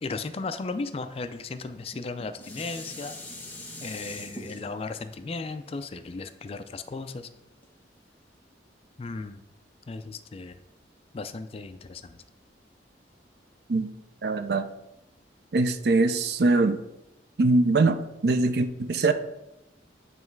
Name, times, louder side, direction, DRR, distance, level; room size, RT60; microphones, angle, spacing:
voice 1, 0.0-3.1 3.8-7.3 9.0-9.4 9.9-10.6 11.1-12.1, left 3 dB, 35° left, 10 dB, 0.3 m, -35 dB
Dishes pots and pans, 1.8-7.1 7.6-7.7, left 1 dB, 10° left, 1.0 m, -43 dB
voice 2, 14.2-14.7 15.5-16.8 17.4-19.1, right 3 dB, 60° right, 10 dB, 0.5 m, -22 dB
9.3 x 3.1 x 4.6 m, 0.92 s
head